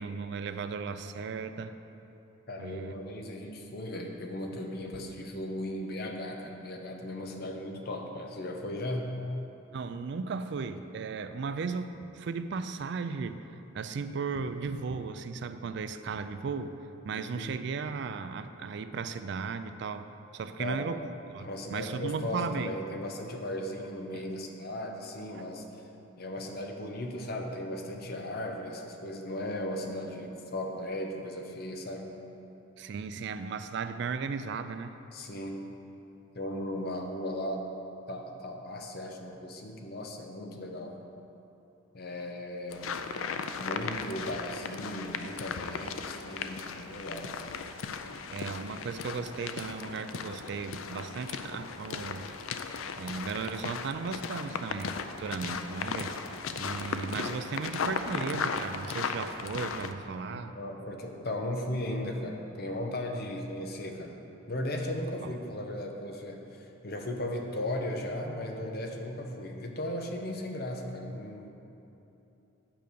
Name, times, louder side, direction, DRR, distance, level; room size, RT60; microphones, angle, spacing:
voice 1, 0.0-1.7 2.6-2.9 9.7-13.4 13.7-16.7 17.0-20.1 20.3-21.0 21.3-22.7 24.1-24.3 25.3-25.4 32.8-34.9 48.3-52.2 53.0-56.1 56.6-60.5 65.2-65.3, right 5 dB, 60° right, 10 dB, 0.4 m, -36 dB
voice 2, 2.5-9.2 17.1-17.5 20.6-20.9 21.4-25.6 26.2-32.1 35.1-35.7 36.3-37.7 38.1-40.9 41.9-42.9 43.6-47.3 55.5-55.7 60.4-64.2 64.5-71.5, left 1 dB, 50° left, 3 dB, 0.8 m, -36 dB
sound 1, 42.7-59.9, left 5 dB, 85° left, 0.5 m, -37 dB
9.0 x 5.2 x 6.8 m, 2.9 s
head